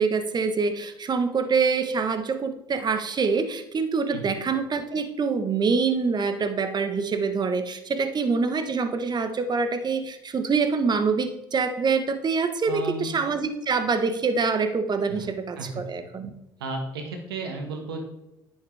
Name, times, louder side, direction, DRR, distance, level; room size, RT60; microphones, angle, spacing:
voice 1, 0.0-16.3, right 5 dB, 35° right, 8 dB, 1.2 m, -25 dB
voice 2, 12.7-13.1 15.1-15.3 15.6-15.8 16.6-18.0, right 3 dB, 85° right, 3 dB, 1.6 m, -33 dB
10.0 x 7.9 x 3.5 m, 0.89 s
hypercardioid pair, 60°, 12 cm